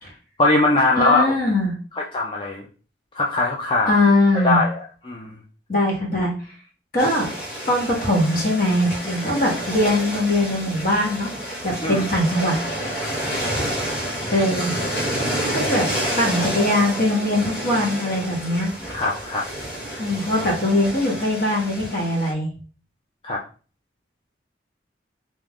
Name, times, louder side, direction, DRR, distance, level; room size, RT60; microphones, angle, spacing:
voice 1, 0.4-1.3 2.0-2.6 3.1-4.0 4.3-5.4 11.8-12.0 18.9-19.4 23.2-23.4, left 2 dB, 30° left, -2 dB, 0.5 m, -21 dB
voice 2, 1.0-1.7 3.9-4.6 5.7-6.3 6.9-7.3 7.7-11.3 11.6-12.5 14.3-14.7 15.5-15.8 16.2-18.7 20.0-22.5, left 1 dB, 50° left, -1 dB, 1.4 m, -21 dB
sound 1, 7.0-22.3, equal, 80° left, 1.7 m, -29 dB
3.6 x 3.0 x 3.6 m, 0.37 s
head